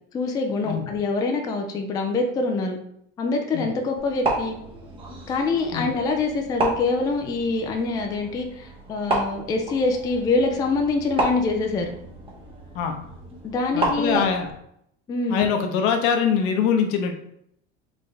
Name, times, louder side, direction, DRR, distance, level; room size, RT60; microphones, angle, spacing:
voice 1, 0.1-2.8 3.2-4.5 5.3-11.9 13.4-14.3 15.1-15.5, left 3 dB, 15° left, 3 dB, 0.3 m, -25 dB
sound 1, 4.0-14.5, right 2 dB, 20° right, 0.9 m, -31 dB
voice 2, 13.7-14.5 15.3-17.1, left 7 dB, 75° left, 5 dB, 0.9 m, -23 dB
4.2 x 3.5 x 3.2 m, 0.72 s
cardioid pair, 160°, 29 cm